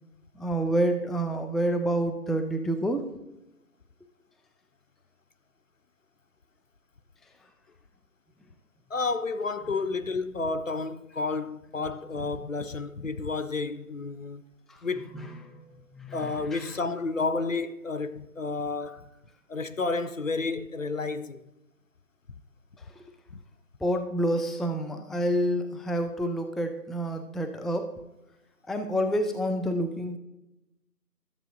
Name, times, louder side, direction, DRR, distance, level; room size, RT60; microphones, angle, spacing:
voice 1, 0.4-3.0 14.7-14.8 15.1-15.6 15.9-16.7 23.0-23.1 23.8-28.0 28.7-30.2, right 1 dB, ahead, 0.4 m, -28 dB
voice 2, 8.9-14.4 14.8-15.2 16.1-19.1 19.5-21.4, left 3 dB, 55° left, 0.5 m, -31 dB
13.5 x 7.5 x 2.6 m
figure-of-eight pair, 170°, 47 cm